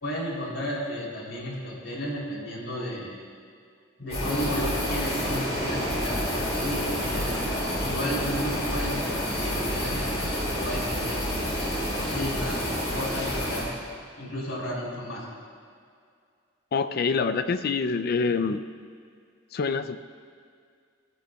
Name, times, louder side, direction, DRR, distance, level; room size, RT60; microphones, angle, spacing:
voice 1, 0.0-3.1 4.0-7.4 7.8-10.3 10.6-11.4 11.8-13.7 14.2-15.2, equal, 80° left, -4 dB, 3.2 m, -33 dB
sound 1, 4.1-13.6, equal, 35° left, 3.1 m, -29 dB
voice 2, 16.7-18.6 19.5-20.0, left 4 dB, 50° left, 11 dB, 0.4 m, -26 dB
14.0 x 14.0 x 2.3 m, 2.2 s
head